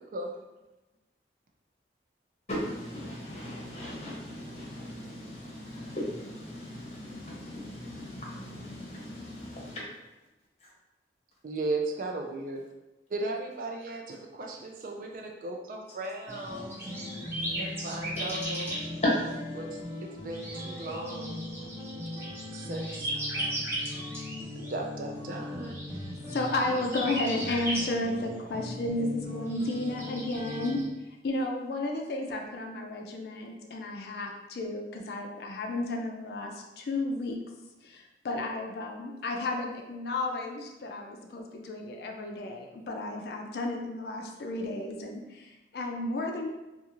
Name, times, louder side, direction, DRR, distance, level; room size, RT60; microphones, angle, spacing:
voice 1, 2.5-9.9 19.0-19.2, left 1 dB, 35° left, -4 dB, 0.7 m, -36 dB
voice 2, 11.4-12.6 13.1-16.9 17.6-18.8 19.5-21.8 22.5-23.3 24.0-24.1 24.6-25.7, right 2 dB, 50° right, 1 dB, 0.3 m, -36 dB
sound 1, 16.3-30.8, equal, 15° right, 0.7 m, -36 dB
voice 3, 26.3-30.8 31.2-37.4 37.8-46.5, left 2 dB, 60° left, 2 dB, 0.4 m, -33 dB
2.4 x 2.4 x 2.9 m, 1.0 s
head